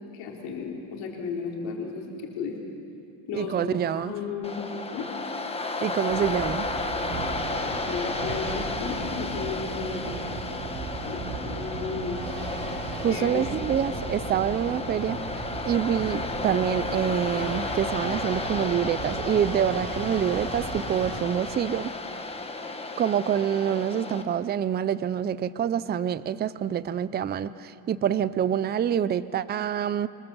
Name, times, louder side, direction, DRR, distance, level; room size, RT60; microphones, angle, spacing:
voice 1, 0.1-2.6 3.3-4.6 4.9-5.1 7.9-10.2 11.0-12.2 13.1-13.4, left 5 dB, 85° left, -2 dB, 4.2 m, -34 dB
voice 2, 3.3-4.2 5.8-6.7 13.0-15.3 15.7-21.9 23.0-30.1, right 9 dB, 25° right, 16 dB, 0.5 m, -26 dB
Waves surf, 4.4-24.2, left 3 dB, 15° left, 1.5 m, -33 dB
sound 1, 6.1-21.2, right 4 dB, 65° right, 4.0 m, -37 dB
25.0 x 21.5 x 7.2 m, 2.7 s
cardioid pair, 125°, 44 cm